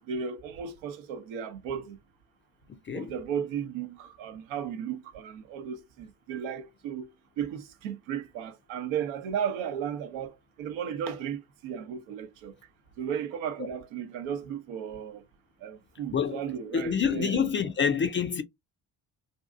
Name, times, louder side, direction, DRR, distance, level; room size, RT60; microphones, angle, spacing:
voice 1, 0.0-2.0 2.9-7.1 7.4-12.5 13.0-15.2 15.6-17.4, right 8 dB, 70° right, 0.7 m, -35 dB
voice 2, 16.7-18.4, left 7 dB, 25° left, 0.4 m, -27 dB
2.6 x 2.5 x 2.4 m
hypercardioid pair, 55°, 48 cm